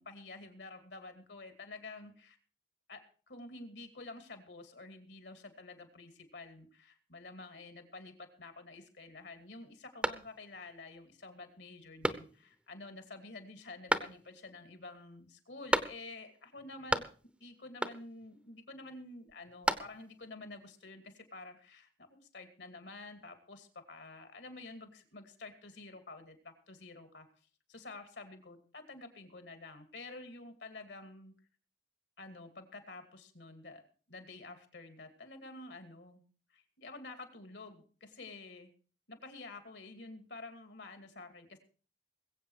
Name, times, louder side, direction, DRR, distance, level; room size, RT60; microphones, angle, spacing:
voice 1, 0.0-2.4 2.9-3.0 3.3-17.0 17.4-27.3 27.7-31.3 32.2-33.8 34.1-36.2 36.5-38.7 39.1-41.6, left 2 dB, 70° left, 7 dB, 2.5 m, -49 dB
sound 1, 10.0-10.7 11.1-11.2 12.0-12.6 13.9-14.5 15.7-16.3 16.6-17.4 17.8-18.3 19.3-20.2, right 1 dB, 5° right, 0.7 m, -34 dB
21.5 x 8.2 x 4.8 m, 0.40 s
head